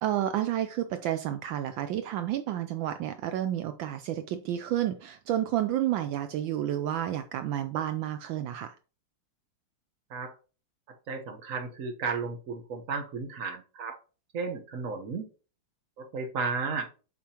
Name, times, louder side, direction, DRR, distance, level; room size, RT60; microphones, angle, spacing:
voice 1, 0.0-8.7, right 11 dB, 75° right, 1.3 m, -30 dB
voice 2, 11.1-14.0 14.3-15.3 16.0-16.9, right 4 dB, 45° right, 1.4 m, -33 dB
8.1 x 6.1 x 3.0 m
omnidirectional pair, 2.2 m